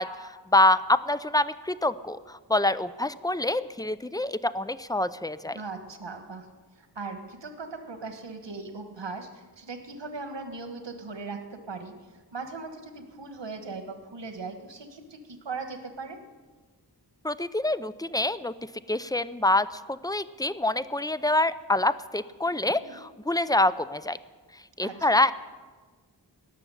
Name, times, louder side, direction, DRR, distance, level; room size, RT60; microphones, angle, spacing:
voice 1, 0.0-5.6 17.2-18.5 18.9-24.2 24.8-25.3, left 2 dB, 10° left, 15 dB, 0.5 m, -26 dB
voice 2, 5.5-6.5 6.8-11.9 12.3-16.2 22.7-23.0 24.8-25.2, right 4 dB, 90° right, 7 dB, 1.5 m, -39 dB
18.0 x 7.0 x 10.0 m, 1.4 s
wide cardioid pair, 50°, 42 cm